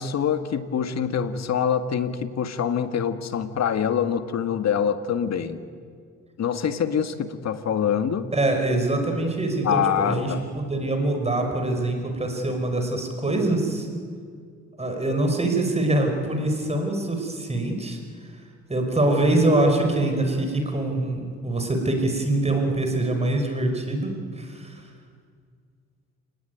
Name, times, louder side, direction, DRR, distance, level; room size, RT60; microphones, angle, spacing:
voice 1, 0.0-5.6 6.4-8.3 9.6-10.4, left 8 dB, 60° left, 9 dB, 1.8 m, -25 dB
voice 2, 8.3-13.9 14.8-18.0 18.7-24.8, right 2 dB, 20° right, 4 dB, 5.1 m, -24 dB
28.5 x 19.5 x 9.3 m, 2.1 s
cardioid pair, 90°, 30 cm